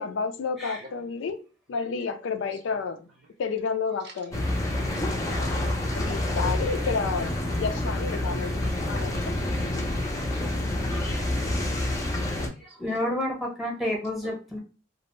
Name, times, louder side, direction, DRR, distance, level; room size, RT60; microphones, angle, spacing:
voice 1, 0.0-3.1 3.4-4.5 5.9-8.5 8.9-9.2, left 5 dB, 80° left, 0.4 m, -30 dB
voice 2, 1.7-2.1 2.4-2.8 4.0-4.5 4.9-6.2 6.7-6.9 8.2-10.6 11.0-12.8 14.2-14.3, right 3 dB, 60° right, 0.6 m, -52 dB
sound 1, 4.3-12.5, left 1 dB, 15° left, 0.5 m, -28 dB
voice 3, 10.9-11.4 12.1-12.2 12.6-14.6, left 1 dB, ahead, 0.8 m, -31 dB
2.4 x 2.0 x 3.0 m
head